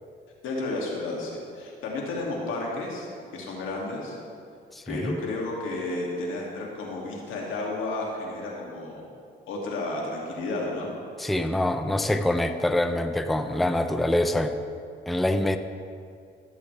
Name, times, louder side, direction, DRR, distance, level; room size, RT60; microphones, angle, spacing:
voice 1, 0.4-3.1 3.3-4.2 4.9-9.0 9.5-10.9, left 2 dB, 85° left, -2 dB, 2.3 m, -32 dB
voice 2, 4.7-5.2 11.2-14.6 15.1-15.6, left 1 dB, ahead, 8 dB, 0.5 m, -25 dB
16.5 x 8.3 x 3.3 m, 2.4 s
cardioid pair, 90°, 20 cm